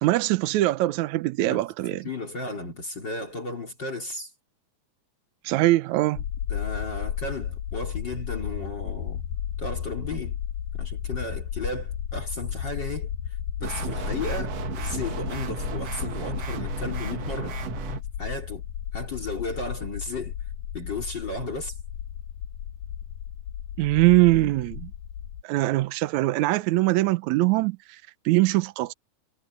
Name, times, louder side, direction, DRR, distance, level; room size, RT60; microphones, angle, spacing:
voice 1, 0.0-2.1 5.4-6.2 23.8-24.9 25.4-28.9, right 18 dB, 80° right, 2.0 m, -22 dB
voice 2, 2.0-4.3 6.5-9.2 9.6-10.4 10.7-18.7 18.9-20.3 20.7-21.8, left 2 dB, 35° left, 4.3 m, -34 dB
sound 1, 6.2-25.4, left 10 dB, 80° left, 2.5 m, -34 dB
sound 2, 13.6-18.0, right 7 dB, 60° right, 2.6 m, -34 dB
omnidirectional pair, 3.5 m